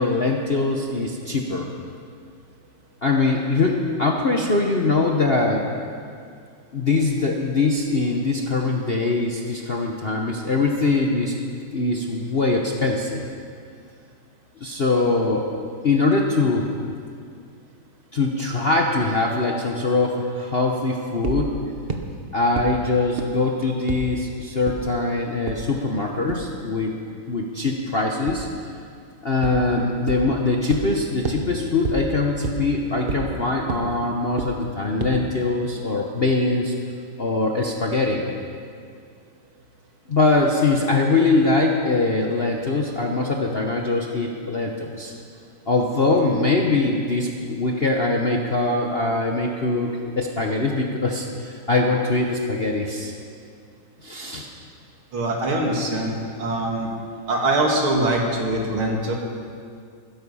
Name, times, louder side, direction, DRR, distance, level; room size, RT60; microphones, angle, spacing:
voice 1, 0.0-1.7 3.0-5.7 6.7-11.4 11.7-13.2 14.6-15.5 15.8-16.7 18.1-21.5 22.3-27.0 27.3-28.5 29.2-36.7 37.2-38.3 40.1-45.1 45.7-53.1 54.0-54.5, left 3 dB, 40° left, 0 dB, 0.8 m, -22 dB
sound 1, 21.2-21.4 21.9-22.0 22.6-22.7 23.2-23.3 23.9-24.0 24.7-24.8 25.5-25.6 26.3-26.4 28.3-28.4 29.4-29.5 30.1-30.2 30.7-30.8 31.2-31.4 31.8-31.9 32.4-32.5 33.1-33.2 33.7-33.8 34.4-34.5 35.0-35.1, right 5 dB, 40° right, 0.8 m, -26 dB
voice 2, 55.1-56.9 57.3-59.1, right 1 dB, 80° right, 0 dB, 2.9 m, -23 dB
16.0 x 13.5 x 5.6 m, 2.3 s
omnidirectional pair, 2.3 m